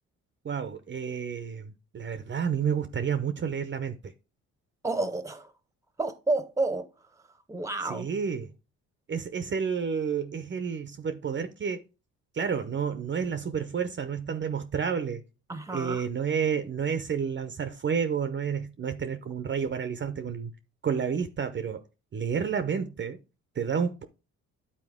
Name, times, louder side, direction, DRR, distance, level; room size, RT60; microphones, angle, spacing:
voice 1, 0.4-4.0 7.8-8.5 9.1-11.8 12.3-15.2 15.7-20.5 20.8-21.8 22.1-23.2 23.6-24.0, right 7 dB, 40° right, 0.7 m, -30 dB
voice 2, 4.8-5.5 6.0-6.9 7.5-8.1 15.5-16.1, right 2 dB, 10° right, 0.9 m, -30 dB
9.9 x 4.2 x 3.5 m
cardioid pair, 90°, 30 cm